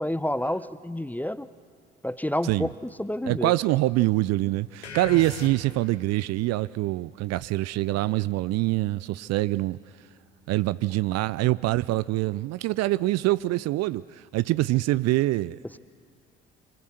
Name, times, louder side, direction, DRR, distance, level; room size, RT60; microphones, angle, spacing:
voice 1, 0.0-1.5 2.0-2.7 3.0-3.5, left 1 dB, 5° left, 0.7 m, -29 dB
voice 2, 3.3-9.8 10.5-15.6, right 18 dB, 55° right, 0.5 m, -25 dB
sound 1, 4.8-6.0, left 5 dB, 90° left, 1.4 m, -38 dB
24.5 x 20.0 x 6.6 m
figure-of-eight pair, 50°, 32 cm